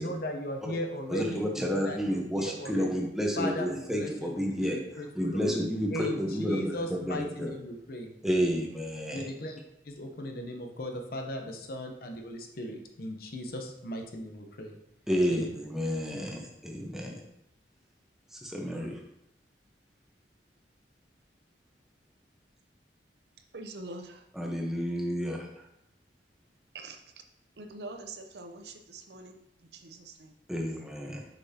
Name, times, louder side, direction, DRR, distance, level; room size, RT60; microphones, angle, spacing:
voice 1, 0.0-3.1 3.4-4.7 5.0-5.5 5.9-6.2 6.5-8.1 9.1-9.6 9.8-14.8 15.3-15.5, equal, 55° left, 3 dB, 0.8 m, -37 dB
voice 2, 1.1-4.8 5.1-7.5 8.2-9.3 15.1-17.2 18.3-19.0 24.3-25.7 30.5-31.3, equal, 5° right, 0 dB, 0.9 m, -30 dB
voice 3, 23.5-24.2 26.7-27.2 27.6-30.3, right 2 dB, 65° right, 5 dB, 0.6 m, -44 dB
6.6 x 5.8 x 2.8 m, 0.80 s
head